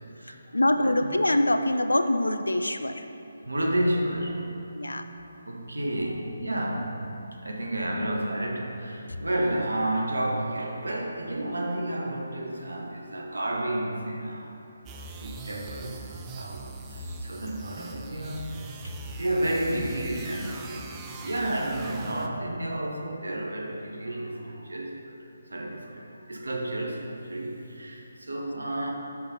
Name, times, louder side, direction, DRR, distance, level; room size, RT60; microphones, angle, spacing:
voice 1, 0.5-3.0 4.7-5.0, left 1 dB, 80° left, 8 dB, 0.4 m, -24 dB
voice 2, 3.5-4.5 5.2-7.1 7.4-14.5 14.9-16.6 16.9-18.5 19.2-20.9 21.2-25.1 25.5-28.9, right 1 dB, 75° right, 0 dB, 0.9 m, -31 dB
sound 1, 14.9-22.5, right 3 dB, 15° right, 0.3 m, -41 dB
5.5 x 4.0 x 5.2 m, 3.0 s
figure-of-eight pair, 150°, 0 cm